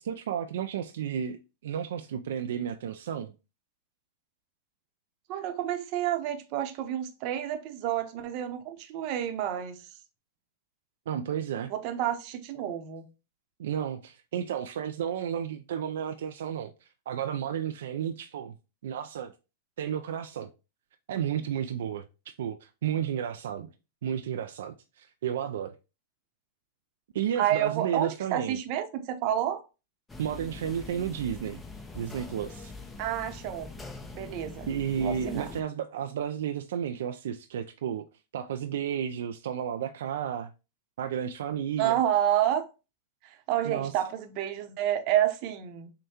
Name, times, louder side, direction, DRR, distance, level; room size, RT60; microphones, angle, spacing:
voice 1, 0.0-3.3 11.1-11.7 13.6-18.5 18.8-19.3 19.8-20.5 21.1-23.7 24.0-25.7 27.1-28.6 30.2-31.6 31.9-32.7 34.4-38.0 38.3-40.5 41.0-42.0 43.6-43.9, right 9 dB, 75° right, 0.3 m, -32 dB
voice 2, 5.3-9.8 11.7-13.1 27.4-29.6 33.0-33.7 34.1-34.7 35.0-35.5 41.8-42.6 43.2-45.9, right 11 dB, 50° right, 0.8 m, -29 dB
sound 1, 30.1-35.6, left 3 dB, 10° left, 0.7 m, -43 dB
6.4 x 2.2 x 2.8 m
hypercardioid pair, 115°, 0 cm